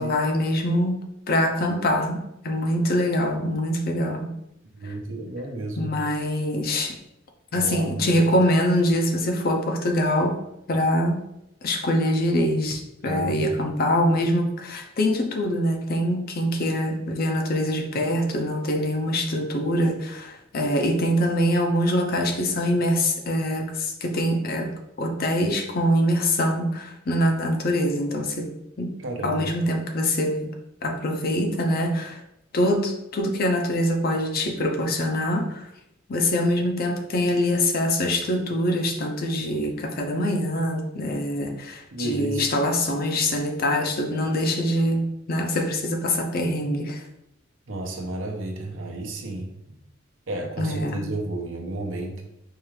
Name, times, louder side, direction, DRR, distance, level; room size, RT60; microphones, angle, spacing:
voice 1, 0.0-4.3 4.8-4.9 5.8-6.9 7.5-10.4 10.7-11.2 11.6-28.5 28.8-28.9 29.2-30.5 30.8-32.2 32.5-35.7 36.1-47.0 50.6-51.0, left 1 dB, 50° left, 4 dB, 0.5 m, -24 dB
voice 2, 4.7-5.9 7.5-8.1 13.0-13.6 29.0-29.5 41.9-42.5 47.7-49.8 50.3-52.2, right 2 dB, 70° right, 1 dB, 0.8 m, -32 dB
4.6 x 2.4 x 3.2 m, 0.82 s
head